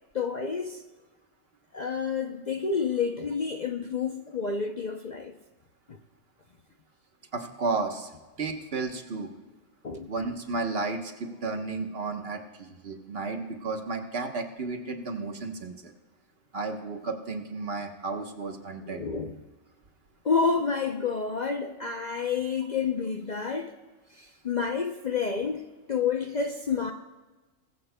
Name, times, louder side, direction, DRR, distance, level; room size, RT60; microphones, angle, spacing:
voice 1, 0.1-0.8 1.7-5.4 5.9-6.0 9.8-10.1 18.8-19.4 20.2-23.7 24.1-26.9, left 5 dB, 45° left, 5 dB, 0.6 m, -29 dB
voice 2, 7.3-8.1 8.4-9.3 10.1-15.9 16.5-19.0, right 3 dB, 50° right, 4 dB, 1.3 m, -33 dB
20.5 x 14.5 x 2.2 m, 1.2 s
omnidirectional pair, 1.3 m